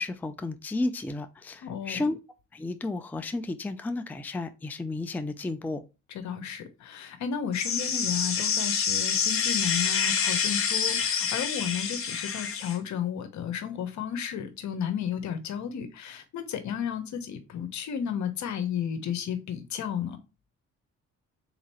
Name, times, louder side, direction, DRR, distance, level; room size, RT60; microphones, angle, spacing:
voice 1, 0.0-2.2 2.5-5.8, left 2 dB, 5° left, 0.4 m, -32 dB
voice 2, 1.6-2.0 6.1-20.2, left 8 dB, 70° left, 0.9 m, -33 dB
sound 1, 7.5-12.8, left 6 dB, 45° left, 0.9 m, -27 dB
3.7 x 2.9 x 4.2 m
cardioid pair, 90°, 30 cm